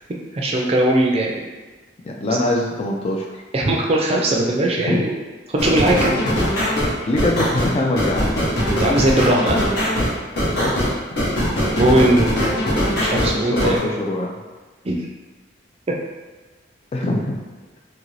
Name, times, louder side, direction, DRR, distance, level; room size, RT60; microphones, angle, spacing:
voice 1, 0.3-1.4 3.5-5.2 5.5-6.2 8.8-9.7 11.6-13.8 14.8-15.0, right 1 dB, 30° right, -1 dB, 0.4 m, -19 dB
voice 2, 2.0-3.3 4.8-5.0 5.7-6.2 7.1-8.4 10.5-10.9 13.3-14.3 16.9-17.4, left 1 dB, 35° left, 0 dB, 0.3 m, -23 dB
sound 1, 5.6-13.8, equal, 60° left, 0.8 m, -21 dB
2.7 x 2.6 x 3.1 m, 1.3 s
head